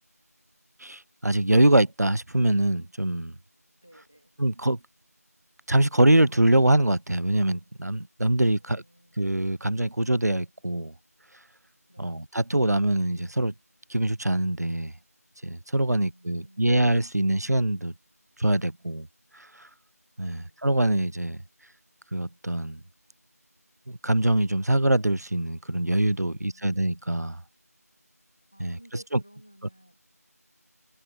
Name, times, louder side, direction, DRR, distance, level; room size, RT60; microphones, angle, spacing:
voice 1, 0.8-3.3 4.4-4.8 5.7-8.8 9.2-10.9 12.0-13.5 13.9-14.9 15.4-17.9 18.4-19.1 20.2-21.4 22.1-22.8 23.9-27.4 28.6-28.8, right 1 dB, 80° right, 0.6 m, -24 dB
voice 2, 3.8-4.3 8.5-9.2 11.9-12.3 15.9-16.7 20.2-20.7 26.2-26.9 28.5-30.0, equal, 10° left, 2.6 m, -55 dB
figure-of-eight pair, 180°, 9 cm